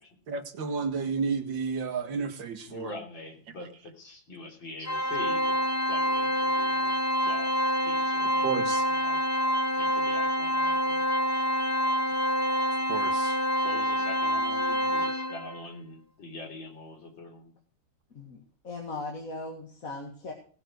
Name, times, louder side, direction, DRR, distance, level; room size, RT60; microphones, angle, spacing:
voice 1, 0.3-2.9 8.4-8.8 12.9-13.4, right 5 dB, 80° right, 8 dB, 2.3 m, -31 dB
voice 2, 2.7-7.0 7.2-9.2 9.7-11.1 13.6-17.5, left 2 dB, 80° left, 2 dB, 4.2 m, -44 dB
Organ, 4.8-15.6, equal, 25° left, 0.3 m, -27 dB
voice 3, 18.1-20.3, left 2 dB, 45° left, 1 dB, 2.4 m, -38 dB
18.5 x 6.9 x 6.2 m, 0.43 s
omnidirectional pair, 2.0 m